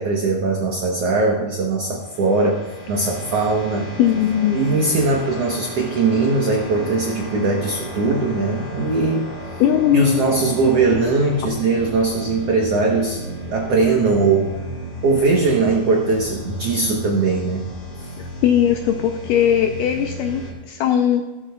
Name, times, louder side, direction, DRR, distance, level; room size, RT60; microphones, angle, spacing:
voice 1, 0.0-3.9 4.5-9.3 9.9-13.2 13.5-14.5 15.0-17.7 18.0-18.1, right 3 dB, 85° right, 0 dB, 1.3 m, -20 dB
sound 1, 2.0-20.5, right 1 dB, 30° left, 2.2 m, -33 dB
voice 2, 4.0-4.6 9.6-10.3 11.4-11.5 18.4-21.2, left 9 dB, 80° left, 5 dB, 1.9 m, -19 dB
16.0 x 13.0 x 2.3 m, 1.2 s
omnidirectional pair, 4.4 m